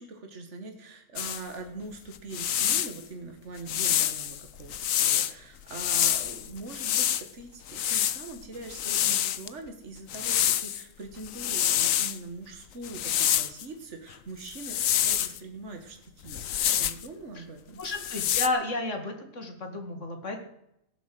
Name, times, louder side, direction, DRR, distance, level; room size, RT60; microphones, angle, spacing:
voice 1, 0.0-16.4 16.8-17.8, right 3 dB, 65° right, 4 dB, 2.0 m, -42 dB
sound 1, 1.2-1.4 2.1-3.0 3.7-5.3 5.7-7.2 7.7-9.5 10.1-10.8 11.2-12.2 12.8-13.6 14.5-15.4 16.3-17.1 17.8-18.5, left 11 dB, 90° left, 1.2 m, -27 dB
voice 2, 17.8-20.4, left 2 dB, 70° left, 5 dB, 2.6 m, -32 dB
17.0 x 7.4 x 7.7 m, 0.80 s
omnidirectional pair, 1.3 m